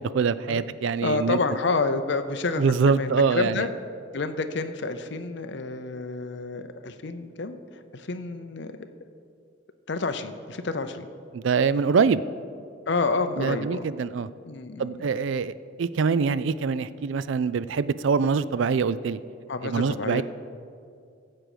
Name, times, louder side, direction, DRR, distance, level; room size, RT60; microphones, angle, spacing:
voice 1, 0.0-1.4 2.6-3.5 11.3-12.2 13.4-14.3 14.8-15.5 15.8-19.2 19.6-20.2, right 5 dB, 65° right, 16 dB, 0.4 m, -24 dB
voice 2, 1.0-2.6 2.9-3.7 4.1-7.6 7.9-8.8 9.9-11.1 12.9-13.9 14.4-15.1 19.5-20.2, left 3 dB, 55° left, 8 dB, 0.6 m, -29 dB
15.0 x 7.6 x 4.9 m, 2.3 s
head